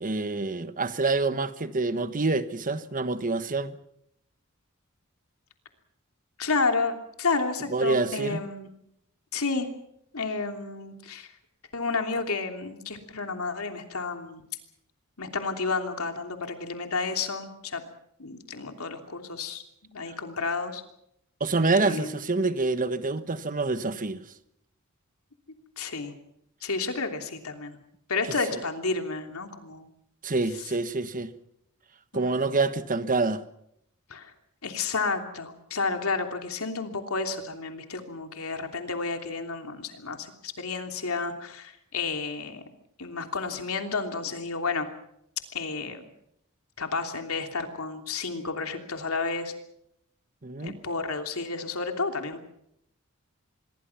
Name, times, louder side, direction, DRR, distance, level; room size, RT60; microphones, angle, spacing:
voice 1, 0.0-3.8 7.7-8.4 20.1-20.2 21.4-24.2 30.2-31.3 32.1-33.4 50.4-50.8, right 3 dB, 40° right, 1.2 m, -27 dB
voice 2, 6.4-8.7 9.3-9.7 10.1-11.3 11.7-14.4 15.2-17.8 18.2-20.8 21.7-22.2 25.8-26.1 26.6-27.8 28.1-29.9 32.1-32.4 34.1-34.3 34.6-42.6 43.0-44.9 45.5-46.0 46.8-49.5 50.6-52.4, left 4 dB, 85° left, 3.0 m, -31 dB
26.0 x 22.0 x 5.9 m
head